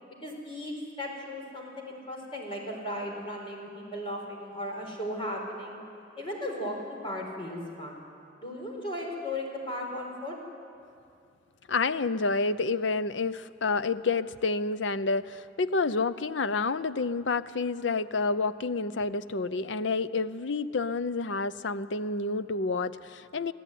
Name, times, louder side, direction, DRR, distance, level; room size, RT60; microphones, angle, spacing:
voice 1, 0.2-5.8 6.2-8.0 8.4-10.4, left 1 dB, 30° left, 0 dB, 4.3 m, -36 dB
voice 2, 11.7-23.5, left 3 dB, 70° left, 14 dB, 0.6 m, -29 dB
25.0 x 15.5 x 9.3 m, 2.4 s
head